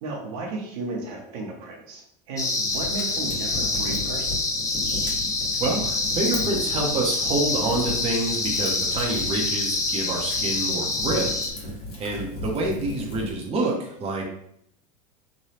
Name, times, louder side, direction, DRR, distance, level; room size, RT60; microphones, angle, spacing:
voice 1, 0.0-4.5, right 3 dB, 65° right, 0 dB, 0.8 m, -34 dB
sound 1, 2.4-11.5, left 3 dB, 15° left, 0.5 m, -26 dB
Fire, 2.7-13.3, left 1 dB, 55° left, 1.3 m, -36 dB
voice 2, 5.6-14.2, right 2 dB, 30° right, -1 dB, 0.7 m, -27 dB
3.1 x 2.2 x 2.8 m, 0.71 s
hypercardioid pair, 105°, 19 cm